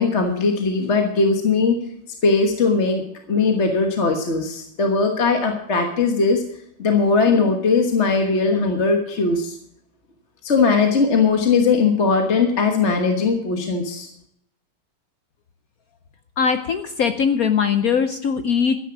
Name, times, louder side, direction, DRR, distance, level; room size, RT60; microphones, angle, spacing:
voice 1, 0.0-1.8 2.2-3.0 3.3-6.4 6.8-9.6 10.4-14.1, left 4 dB, 40° left, 4 dB, 1.4 m, -19 dB
voice 2, 16.4-18.8, left 6 dB, 65° left, 9 dB, 0.9 m, -20 dB
13.0 x 10.0 x 6.0 m, 0.74 s
omnidirectional pair, 2.3 m